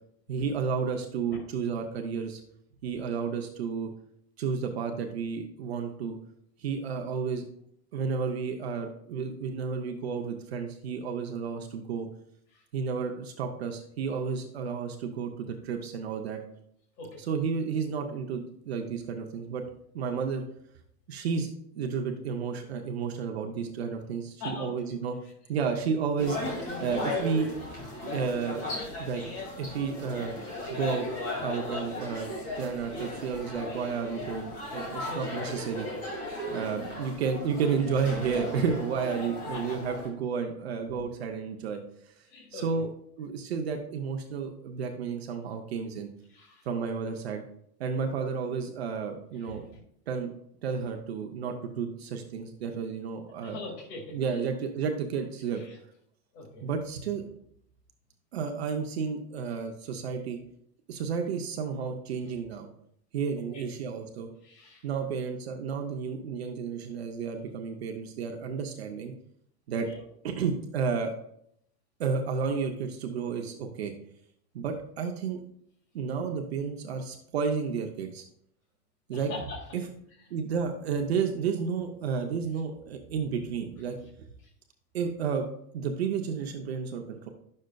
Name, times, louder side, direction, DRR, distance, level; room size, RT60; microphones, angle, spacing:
voice 1, 0.3-2.4 2.8-3.9 4.4-6.2 6.6-7.4 7.9-12.1 12.7-16.4 17.3-19.6 19.9-20.4 21.1-25.2 25.5-26.4 26.8-27.5 28.0-28.6 29.0-30.3 30.7-31.1 31.4-35.9 36.5-41.8 42.1-42.2 42.5-42.9 43.2-46.1 46.7-47.4 47.8-49.7 50.1-50.3 50.6-53.6 54.1-55.6 56.6-57.2 58.3-60.4 60.9-62.7 63.1-64.3 64.8-69.1 69.7-69.9 70.2-71.1 72.0-73.9 74.5-75.4 75.9-78.2 79.1-79.3 79.7-79.8 80.3-84.0 84.9-85.5 85.7-87.3, right 6 dB, 40° right, 3 dB, 0.6 m, -31 dB
sound 1, 26.2-40.1, left 2 dB, 35° left, 1.8 m, -36 dB
voice 2, 35.0-35.4 36.6-36.8 39.2-39.8 42.3-42.7 46.3-46.7 47.9-48.0 49.4-49.6 53.4-54.4 55.5-55.8 56.3-56.6 63.5-63.6 64.4-64.9 69.9-70.0 79.1-79.6, left 3 dB, 70° left, -3 dB, 2.1 m, -42 dB
10.0 x 6.4 x 2.2 m, 0.70 s
supercardioid pair, 175°, 50 cm